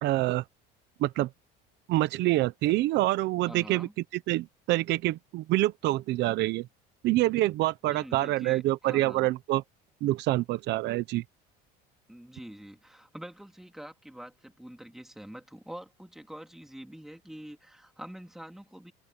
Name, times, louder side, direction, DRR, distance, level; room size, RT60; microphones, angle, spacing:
voice 1, 0.0-0.4 1.0-1.3 1.9-3.9 4.3-6.7 7.0-9.6 10.0-11.2, right 17 dB, 60° right, 0.9 m, -26 dB
voice 2, 3.4-3.9 7.8-9.3 12.1-18.9, right 1 dB, ahead, 3.0 m, -45 dB
open air
cardioid pair, 135°, 21 cm